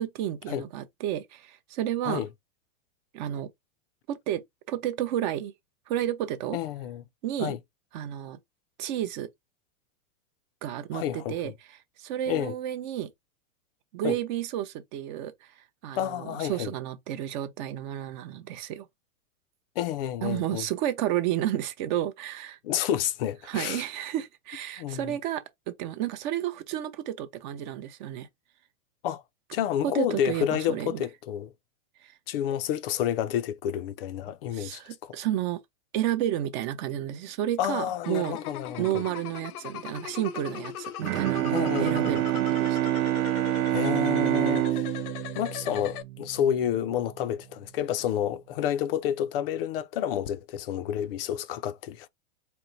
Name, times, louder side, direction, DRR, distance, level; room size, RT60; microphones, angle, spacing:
voice 1, 0.0-2.2 3.1-3.5 4.1-5.5 5.9-6.6 7.2-7.5 7.9-8.4 8.8-9.3 10.6-13.1 13.9-18.9 20.2-22.6 23.4-28.3 29.8-31.0 32.0-32.1 34.5-35.6 35.9-38.4 38.8-42.8, right 11 dB, 35° right, 0.5 m, -31 dB
voice 2, 6.5-7.0 7.4-7.6 10.9-11.3 12.3-12.5 14.0-14.2 15.9-16.7 19.8-20.6 22.6-23.8 24.8-25.2 29.0-29.2 29.5-31.5 32.3-35.2 37.6-39.0 41.5-42.2 43.7-44.9 45.3-52.1, left 10 dB, 45° left, 0.4 m, -30 dB
sound 1, 38.0-46.0, left 10 dB, 85° left, 0.8 m, -39 dB
Bowed string instrument, 41.0-46.6, right 14 dB, 70° right, 0.7 m, -27 dB
4.4 x 2.1 x 3.9 m
supercardioid pair, 150°, 44 cm